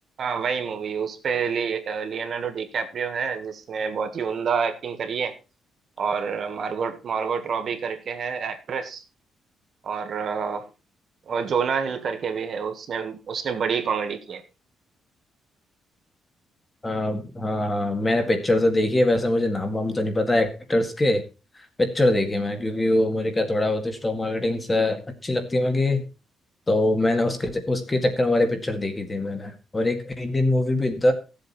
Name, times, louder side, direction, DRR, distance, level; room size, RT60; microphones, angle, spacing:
voice 1, 0.2-5.3 6.0-9.0 9.8-10.7 11.3-14.4, right 6 dB, 45° right, 7 dB, 1.6 m, -28 dB
voice 2, 16.8-21.2 21.8-26.0 26.7-31.1, left 1 dB, 15° left, 6 dB, 1.8 m, -23 dB
15.5 x 7.9 x 4.2 m, 0.31 s
cardioid pair, 160°, 0 cm